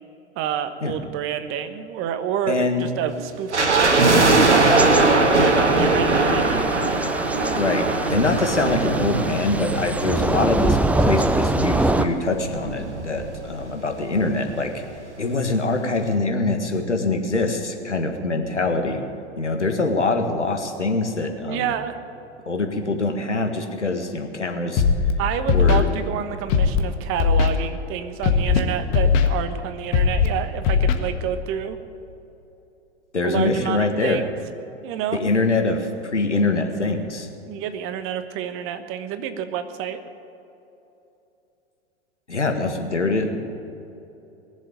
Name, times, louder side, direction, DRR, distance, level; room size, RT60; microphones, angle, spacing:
voice 1, 0.3-6.9 21.4-21.9 25.2-31.8 33.2-34.3 34.8-35.2 37.5-40.0, right 9 dB, 40° right, 9 dB, 1.3 m, -28 dB
voice 2, 2.5-2.9 7.6-14.7 15.2-19.0 19.4-21.7 22.5-24.8 25.5-25.9 33.1-34.2 35.1-37.3 42.3-43.4, left 3 dB, 90° left, 4 dB, 1.8 m, -24 dB
sound 1, 3.5-10.8 11.0-11.1 11.8-13.6 13.9-14.0 14.2-14.5 15.0-15.1, right 2 dB, 85° right, 1.7 m, -20 dB
Thunder / Rain, 3.8-12.1, right 2 dB, 5° right, 0.5 m, -25 dB
Scratching (performance technique), 24.8-25.1 25.5-25.8 26.5-26.8 27.2-27.5 28.2-28.6 28.9-29.3 29.9-30.3 30.6-30.9, left 6 dB, 45° left, 1.6 m, -18 dB
20.5 x 7.6 x 9.1 m, 2.9 s
figure-of-eight pair, 95°, 34 cm